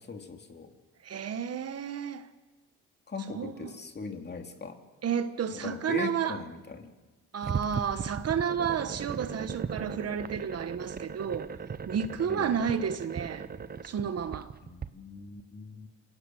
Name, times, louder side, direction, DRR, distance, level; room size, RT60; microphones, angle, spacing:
voice 1, 0.1-0.7 3.1-4.8 5.5-6.9 12.3-12.7 14.6-15.9, left 4 dB, 35° left, 2.6 m, -40 dB
voice 2, 1.0-2.3 3.3-3.7 5.0-6.4 7.3-11.5 11.9-13.5 13.8-14.5, right 7 dB, 55° right, 1.3 m, -31 dB
sound 1, 7.4-14.9, right 6 dB, 30° right, 0.8 m, -38 dB
26.5 x 16.5 x 7.7 m
cardioid pair, 90°, 30 cm